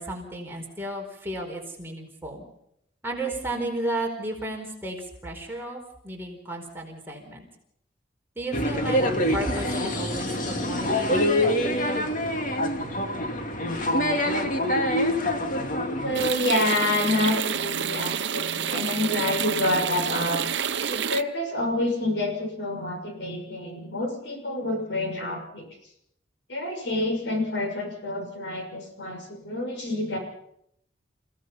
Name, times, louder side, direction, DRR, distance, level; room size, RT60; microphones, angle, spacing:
voice 1, 0.0-2.4 3.0-5.0 5.2-7.5 8.4-9.0 9.3-11.3, right 1 dB, 10° right, 0 dB, 4.6 m, -33 dB
sound 1, 8.5-16.3, left 1 dB, 45° left, 2.2 m, -25 dB
voice 2, 16.0-20.5 20.9-25.7 26.5-30.2, left 1 dB, 75° left, 3 dB, 6.4 m, -28 dB
sound 2, 16.1-21.2, right 8 dB, 65° right, 0.8 m, -29 dB
29.5 x 17.0 x 5.7 m, 0.76 s
head